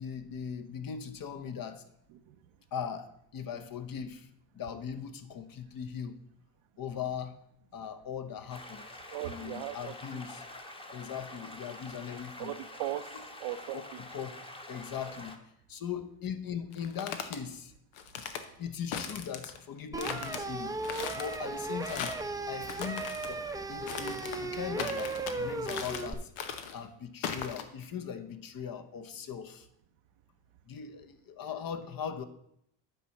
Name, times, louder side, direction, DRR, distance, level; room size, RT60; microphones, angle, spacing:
voice 1, 0.0-1.8 2.7-4.3 4.5-6.2 6.8-7.4 7.7-8.8 9.2-10.4 10.9-12.5 13.1-13.2 14.0-14.3 14.7-15.4 15.7-17.7 18.6-20.7 21.1-22.2 22.5-26.3 26.7-29.7 30.7-32.2, left 7 dB, 45° left, 0.9 m, -39 dB
sound 1, 8.5-15.4, left 1 dB, 10° left, 1.0 m, -46 dB
voice 2, 9.1-10.2 12.4-14.0, right 13 dB, 75° right, 0.7 m, -39 dB
sound 2, 16.7-17.4 18.0-18.4 18.9-19.6 20.0-20.4 20.8-21.4 21.8-22.3 22.6-23.3 23.9-24.4 24.8-25.4 25.7-26.1 26.4-26.8 27.2-27.6, left 7 dB, 85° left, 1.0 m, -38 dB
sound 3, 19.9-26.1, right 3 dB, 5° right, 0.6 m, -36 dB
9.1 x 4.2 x 5.9 m
supercardioid pair, 90°, 49 cm